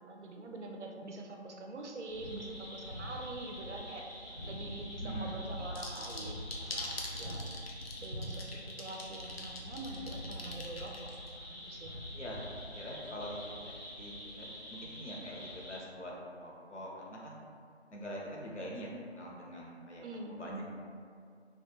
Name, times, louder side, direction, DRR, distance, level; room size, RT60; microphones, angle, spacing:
voice 1, 0.0-4.1 4.5-7.4 8.0-10.9 11.5-11.9 20.0-20.4, right 2 dB, 90° right, 1 dB, 0.5 m, -45 dB
sound 1, 2.1-15.8, equal, 40° right, 0.5 m, -44 dB
voice 2, 5.0-5.4 12.1-12.4 12.7-16.1 16.4-17.4 17.9-20.0 20.3-20.6, equal, 85° left, -3 dB, 0.7 m, -44 dB
sound 2, 5.8-11.3, left 2 dB, 60° left, 0.4 m, -43 dB
2.3 x 2.2 x 2.9 m, 2.2 s
figure-of-eight pair, 175°, 34 cm